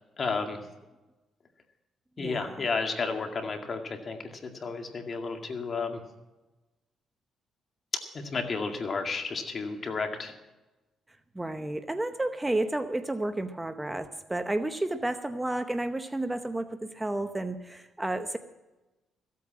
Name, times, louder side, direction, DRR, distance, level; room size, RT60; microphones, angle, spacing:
voice 1, 0.2-0.6 2.2-4.2 4.6-6.0 8.1-10.3, left 4 dB, 45° left, 4 dB, 2.1 m, -32 dB
voice 2, 2.2-2.6 11.3-18.4, right 2 dB, 15° right, 9 dB, 0.8 m, -31 dB
15.0 x 8.5 x 7.3 m, 1.1 s
cardioid pair, 90°, 0 cm